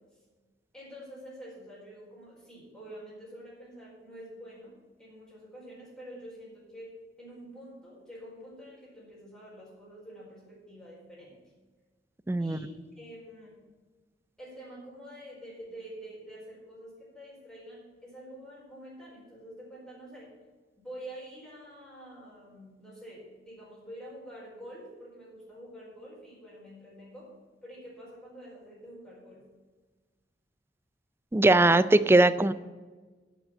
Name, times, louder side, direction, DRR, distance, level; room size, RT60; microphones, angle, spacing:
voice 1, 0.7-11.4 12.4-12.7 12.9-13.6 14.4-20.3 20.8-27.3 27.6-29.4 31.6-31.8, equal, 5° left, -7 dB, 4.6 m, -47 dB
voice 2, 12.3-12.6 31.3-32.5, right 2 dB, 15° right, 15 dB, 0.4 m, -20 dB
11.5 x 6.2 x 8.6 m, 1.3 s
head